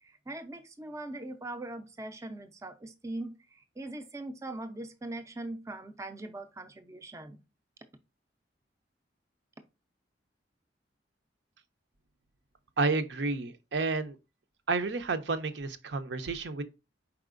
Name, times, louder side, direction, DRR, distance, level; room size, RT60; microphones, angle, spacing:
voice 1, 0.0-7.4, right 2 dB, 15° right, 0.5 m, -41 dB
voice 2, 12.8-14.2 14.7-16.6, right 3 dB, 70° right, 0.6 m, -30 dB
4.7 x 4.2 x 2.4 m
head